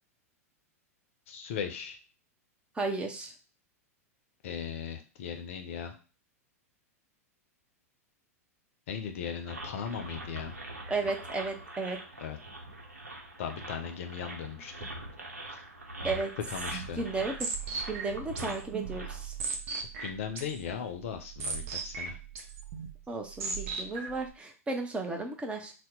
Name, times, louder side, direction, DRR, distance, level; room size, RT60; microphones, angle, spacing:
voice 1, 1.3-2.0 4.4-6.0 8.9-10.6 12.2-12.4 13.4-14.9 15.5-15.6 16.5-17.1 20.0-22.2, left 7 dB, 60° left, 6 dB, 0.6 m, -38 dB
voice 2, 2.8-3.3 10.9-12.0 16.0-16.3 17.0-17.5 17.9-19.3 23.1-25.7, right 3 dB, 15° right, 3 dB, 0.6 m, -34 dB
sound 1, 9.5-19.4, right 1 dB, 85° right, 0.8 m, -43 dB
sound 2, 16.4-24.3, right 5 dB, 55° right, 0.8 m, -39 dB
2.8 x 2.1 x 3.7 m, 0.34 s
figure-of-eight pair, 95°, 8 cm